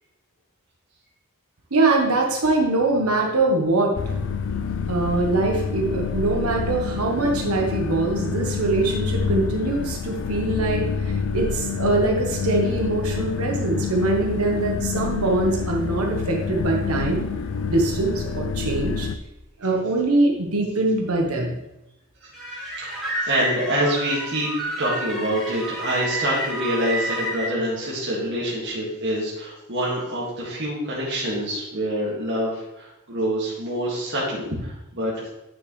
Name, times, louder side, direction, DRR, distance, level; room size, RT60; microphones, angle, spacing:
voice 1, 1.7-4.0 4.9-17.3 17.6-19.1 19.6-21.6, right 2 dB, 80° right, 1 dB, 1.2 m, -23 dB
sound 1, 4.0-19.2, left 6 dB, 55° left, 0.4 m, -27 dB
voice 2, 22.2-24.5 24.8-35.1, equal, 55° right, -6 dB, 2.0 m, -26 dB
sound 2, 22.3-27.5, right 1 dB, ahead, 2.9 m, -29 dB
9.1 x 6.7 x 3.2 m, 0.91 s
head